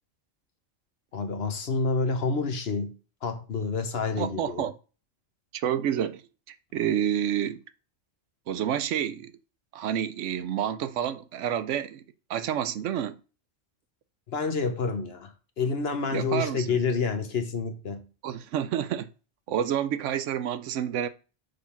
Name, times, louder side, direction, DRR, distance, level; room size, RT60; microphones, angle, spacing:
voice 1, 1.1-3.0 3.2-4.7 14.3-18.1, left 4 dB, 55° left, 1.2 m, -28 dB
voice 2, 4.2-4.7 5.5-6.2 6.5-7.6 8.5-9.3 9.7-12.0 12.3-13.2 16.1-16.8 18.2-19.1 19.5-21.1, right 10 dB, 75° right, 0.9 m, -29 dB
6.6 x 3.5 x 5.7 m
omnidirectional pair, 1.3 m